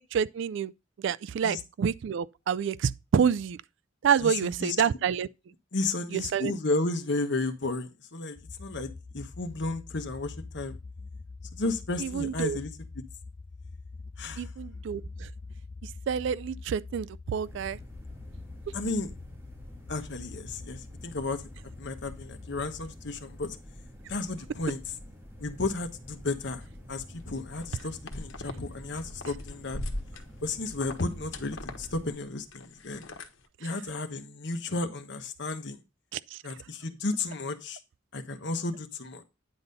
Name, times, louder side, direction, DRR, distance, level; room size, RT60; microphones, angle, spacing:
voice 1, 0.1-0.7 1.0-3.6 4.0-5.3 6.1-6.5 12.0-12.6 14.4-15.3 16.1-17.8 36.1-36.4, right 7 dB, 65° right, 0.3 m, -28 dB
voice 2, 4.2-4.8 5.7-10.7 11.5-13.0 14.2-14.5 18.7-19.1 19.9-21.5 21.8-23.6 24.1-24.8 25.4-29.8 30.4-33.1 33.6-35.8 36.4-37.8 38.1-39.2, left 3 dB, 60° left, 1.2 m, -33 dB
sound 1, 8.4-23.1, left 3 dB, 30° left, 0.5 m, -45 dB
sound 2, 17.4-32.1, equal, 10° right, 1.6 m, -48 dB
sound 3, 27.5-28.6 28.9-33.5, left 2 dB, 85° left, 1.3 m, -40 dB
9.8 x 4.1 x 5.3 m
head